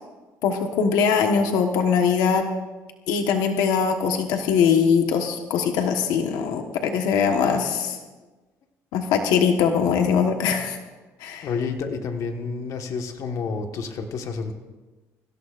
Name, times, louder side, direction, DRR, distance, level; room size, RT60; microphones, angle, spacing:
voice 1, 0.4-2.5 3.1-8.0 8.9-10.8 11.2-11.5, left 6 dB, 85° left, 4 dB, 1.3 m, -21 dB
voice 2, 11.4-14.5, left 5 dB, 60° left, 4 dB, 1.5 m, -29 dB
24.5 x 16.0 x 2.5 m, 1.2 s
cardioid pair, 120°, 6 cm